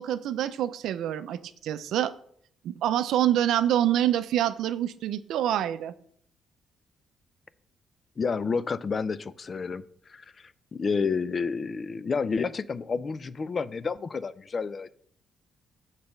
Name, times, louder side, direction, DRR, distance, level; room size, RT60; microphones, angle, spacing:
voice 1, 0.0-2.1 2.6-5.9, right 11 dB, 80° right, 13 dB, 0.4 m, -26 dB
voice 2, 8.2-9.8 10.1-14.9, left 5 dB, 40° left, 16 dB, 0.4 m, -30 dB
6.9 x 4.1 x 6.5 m, 0.63 s
cardioid pair, 90°, 0 cm